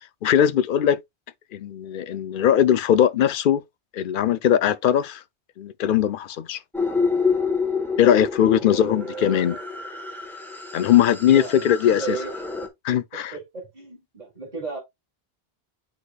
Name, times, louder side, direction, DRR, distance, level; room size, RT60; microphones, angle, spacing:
voice 1, 0.2-1.0 1.5-3.6 3.9-5.2 5.6-6.6 8.0-9.6 10.7-12.2 12.8-13.3, left 10 dB, 60° left, 0.6 m, -20 dB
sound 1, 6.7-12.7, left 5 dB, ahead, 1.1 m, -28 dB
voice 2, 8.7-9.6 11.2-12.3 12.9-13.0 13.3-14.8, right 5 dB, 40° right, 2.5 m, -34 dB
8.1 x 5.2 x 2.2 m
omnidirectional pair, 1.1 m